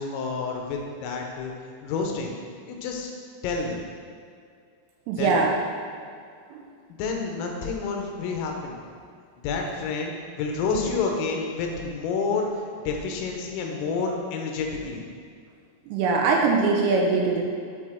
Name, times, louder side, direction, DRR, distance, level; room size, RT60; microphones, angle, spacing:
voice 1, 0.0-1.5 1.8-2.4 2.7-3.1 3.4-3.8 5.1-5.4 7.0-8.8 9.4-12.5 12.9-15.0, left 4 dB, 85° left, 1 dB, 3.5 m, -29 dB
voice 2, 5.1-5.5 15.9-17.4, right 4 dB, 80° right, 0 dB, 3.2 m, -21 dB
11.0 x 4.3 x 4.4 m, 2.2 s
omnidirectional pair, 6.0 m